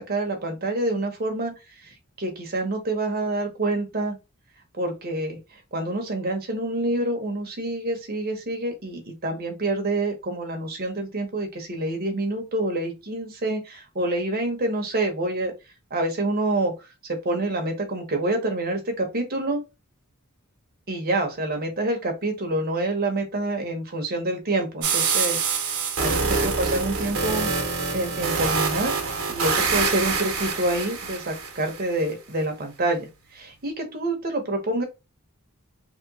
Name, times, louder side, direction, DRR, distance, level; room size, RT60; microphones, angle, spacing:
voice 1, 0.0-1.5 1.8-4.2 4.7-5.4 5.7-15.5 15.9-16.7 17.1-19.6 20.9-25.4 26.0-27.5 27.9-28.9 29.3-34.8, right 2 dB, 45° right, 1.0 m, -27 dB
sound 1, 24.8-31.8, right 4 dB, 70° right, 1.1 m, -25 dB
3.0 x 2.9 x 2.8 m
head